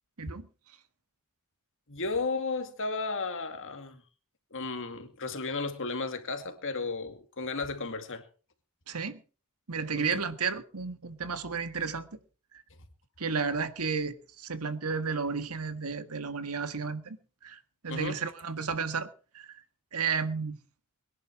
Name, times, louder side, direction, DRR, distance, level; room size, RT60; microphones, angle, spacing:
voice 1, 1.9-4.0 4.5-8.2 9.9-10.2 17.9-18.2, left 3 dB, 60° left, 7 dB, 2.4 m, -34 dB
voice 2, 8.9-9.2 9.7-12.1 12.5-12.6 13.2-17.2 17.4-19.1 19.3-19.6 19.9-20.6, right 5 dB, 80° right, 11 dB, 1.6 m, -32 dB
22.0 x 11.0 x 4.8 m, 0.38 s
head